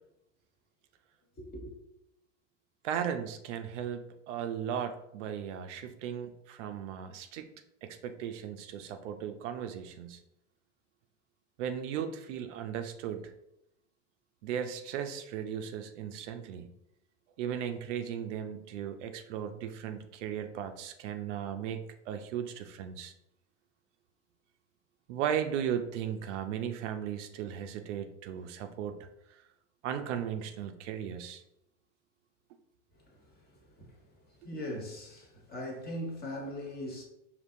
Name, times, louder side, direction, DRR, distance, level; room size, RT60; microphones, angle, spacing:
voice 1, 1.4-1.8 33.1-33.3 33.8-33.9 34.4-37.0, left 1 dB, 25° left, 1.1 m, -40 dB
voice 2, 2.8-7.5 7.8-10.2 11.6-13.2 14.4-16.7 17.4-23.1 25.1-29.1 29.8-31.4, right 9 dB, 75° right, 0.6 m, -36 dB
5.2 x 2.8 x 2.6 m
hypercardioid pair, 110°, 36 cm